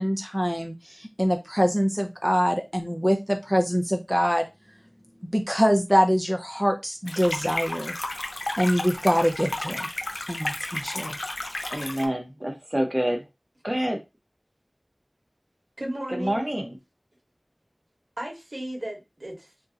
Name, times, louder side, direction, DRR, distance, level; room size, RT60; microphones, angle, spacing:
voice 1, 0.0-4.5 5.3-8.0 8.6-9.9 10.3-11.2, equal, ahead, 0.5 m, -24 dB
sound 1, 7.1-12.1, left 2 dB, 80° left, 0.5 m, -32 dB
voice 2, 11.7-13.2 13.6-14.0 16.1-16.8, equal, 30° right, 0.8 m, -27 dB
voice 3, 15.8-16.4 18.2-19.7, right 1 dB, 75° right, 1.3 m, -35 dB
2.7 x 2.1 x 3.6 m
wide cardioid pair, 40°, 0 cm